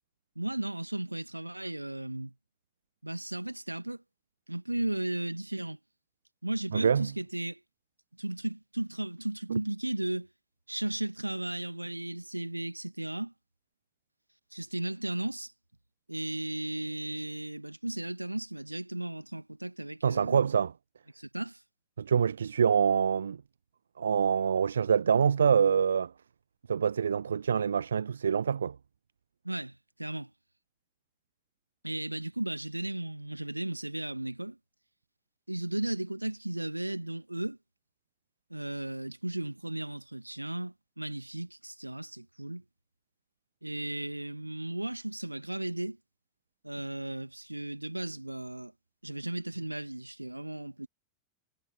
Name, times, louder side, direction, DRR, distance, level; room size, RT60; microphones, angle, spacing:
voice 1, 0.4-2.3 3.0-4.0 4.5-5.8 6.4-7.6 8.2-10.3 10.7-13.3 14.5-15.5 16.1-20.5 21.1-21.6 29.4-30.3 31.8-34.6 35.5-37.6 38.5-42.6 43.6-46.0 46.6-48.7 49.0-50.9, right 1 dB, 85° right, 2.2 m, -35 dB
voice 2, 6.7-7.1 9.5-9.6 20.0-20.7 22.0-23.4 24.0-26.1 26.7-28.8, right 7 dB, 70° right, 0.3 m, -25 dB
figure-of-eight pair, 90°, 0 cm